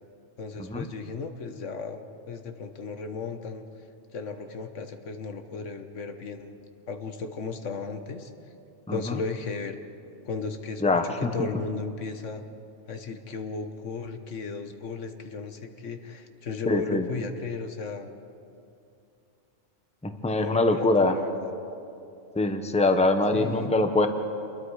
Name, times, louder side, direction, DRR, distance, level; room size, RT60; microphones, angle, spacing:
voice 1, 0.4-3.6 4.1-6.6 6.9-8.3 8.9-9.7 10.2-10.8 11.2-12.4 12.9-18.1 20.4-21.5 23.3-23.7, left 4 dB, 75° left, 7 dB, 1.5 m, -35 dB
voice 2, 8.9-9.2 10.8-11.3 16.6-17.1 20.0-21.2 22.3-24.1, left 2 dB, 5° left, 7 dB, 1.0 m, -23 dB
28.0 x 21.5 x 4.9 m, 2.6 s
omnidirectional pair, 1.3 m